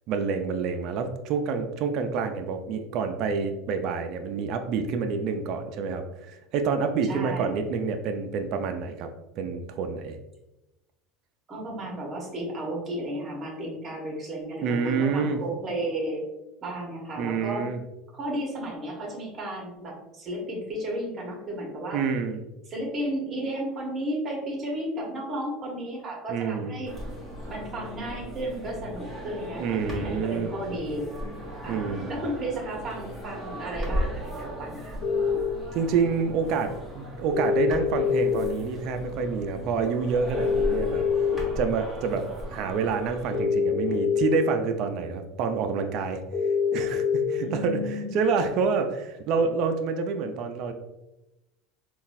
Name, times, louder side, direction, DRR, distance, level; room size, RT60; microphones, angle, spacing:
voice 1, 0.1-9.1 9.4-10.2 14.6-15.4 17.2-17.8 21.9-22.4 26.3-26.7 29.6-30.5 31.7-32.1 35.7-41.1 41.6-46.2 46.7-50.7, right 5 dB, 55° right, 6 dB, 0.4 m, -28 dB
voice 2, 7.0-7.5 11.5-16.2 16.6-17.7 18.1-22.0 22.7-26.9 27.5-31.0 31.6-35.0 47.4-48.1, right 1 dB, 30° right, -1 dB, 1.2 m, -33 dB
sound 1, 26.9-43.4, equal, ahead, 1.3 m, -37 dB
sound 2, 35.0-35.4 37.3-38.3 40.3-41.3 43.3-44.3 46.3-47.2, left 6 dB, 50° left, 0.7 m, -24 dB
3.8 x 2.3 x 2.6 m, 0.96 s
supercardioid pair, 120°, 0 cm